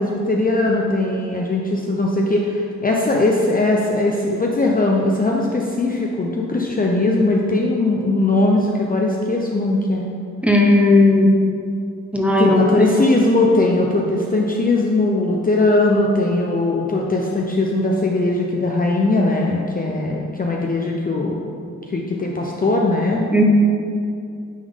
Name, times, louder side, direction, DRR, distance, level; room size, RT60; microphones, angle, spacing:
voice 1, 0.0-10.1 12.4-21.5 21.9-23.3, left 2 dB, 30° left, -1 dB, 0.5 m, -19 dB
voice 2, 10.4-11.3 12.1-12.9 23.3-23.4, left 2 dB, 5° right, -2 dB, 0.8 m, -15 dB
9.5 x 3.7 x 3.6 m, 2.4 s
wide cardioid pair, 105°, 31 cm